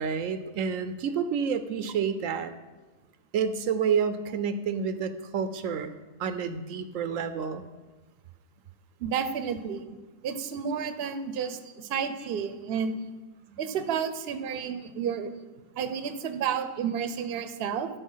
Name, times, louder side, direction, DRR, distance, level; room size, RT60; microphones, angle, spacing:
voice 1, 0.0-2.5 3.3-5.9 6.2-7.7 13.5-13.6, right 6 dB, 80° right, 11 dB, 1.0 m, -29 dB
voice 2, 9.0-9.9 10.2-13.0 13.6-15.3 15.8-17.9, right 7 dB, 55° right, 10 dB, 0.9 m, -31 dB
12.5 x 5.6 x 5.5 m, 1.2 s
omnidirectional pair, 1.3 m